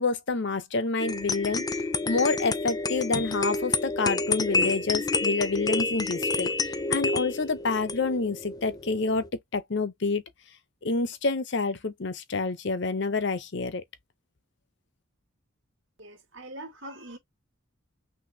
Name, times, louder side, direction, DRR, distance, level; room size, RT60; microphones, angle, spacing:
voice 1, 0.0-1.6 2.1-9.2 9.5-10.2 10.8-13.8, left 3 dB, 55° left, 0.7 m, -28 dB
sound 1, 1.0-9.3, left 3 dB, 20° left, 0.4 m, -29 dB
voice 2, 16.0-17.2, right 1 dB, 60° right, 2.1 m, -42 dB
6.0 x 2.7 x 2.7 m
head